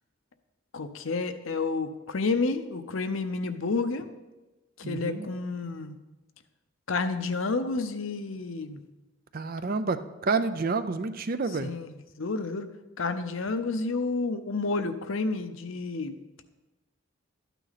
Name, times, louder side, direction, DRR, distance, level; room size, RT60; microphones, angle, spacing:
voice 1, 0.7-4.1 4.8-6.0 6.9-8.8 11.5-12.7 13.0-16.2, left 3 dB, 65° left, 9 dB, 0.7 m, -30 dB
voice 2, 4.8-5.3 9.3-11.7, right 4 dB, 45° right, 12 dB, 0.5 m, -29 dB
12.5 x 9.1 x 4.1 m, 1.1 s
head